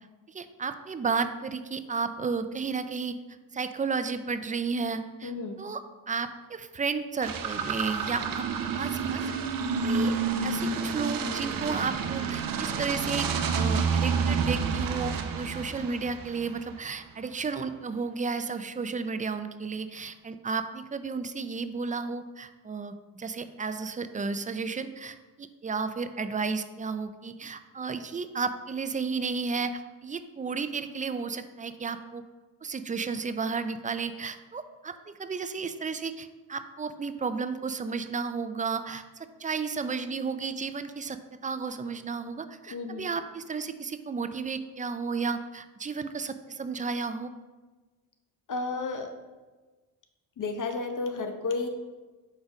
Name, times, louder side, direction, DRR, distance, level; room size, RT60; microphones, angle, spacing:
voice 1, 0.3-3.2 3.5-5.3 5.6-8.4 8.7-9.2 9.8-10.1 10.4-13.3 13.5-32.2 32.6-41.2 41.4-47.3, right 5 dB, 20° right, 10 dB, 0.3 m, -33 dB
voice 2, 5.2-5.6 42.7-43.1 48.5-49.1 50.4-51.7, left 3 dB, 40° left, 5 dB, 0.7 m, -32 dB
sound 1, 7.2-16.7, right 5 dB, 45° right, 0.7 m, -29 dB
5.2 x 4.0 x 4.7 m, 1.3 s
supercardioid pair, 55°, 46 cm